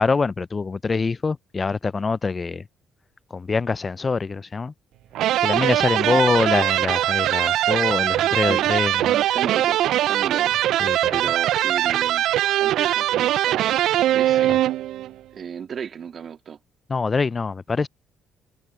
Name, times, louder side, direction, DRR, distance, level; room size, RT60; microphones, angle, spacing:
voice 1, 0.0-2.6 3.3-4.7 5.4-9.1 10.8-11.0 14.5-14.6 16.9-17.9, left 4 dB, 35° left, 0.6 m, -24 dB
sound 1, 5.1-15.1, right 13 dB, 70° right, 0.4 m, -21 dB
voice 2, 8.0-8.7 9.0-10.5 10.8-12.2 12.6-13.7 14.1-14.6 15.3-16.6, right 7 dB, 50° right, 1.9 m, -34 dB
hypercardioid pair, 50°, 0 cm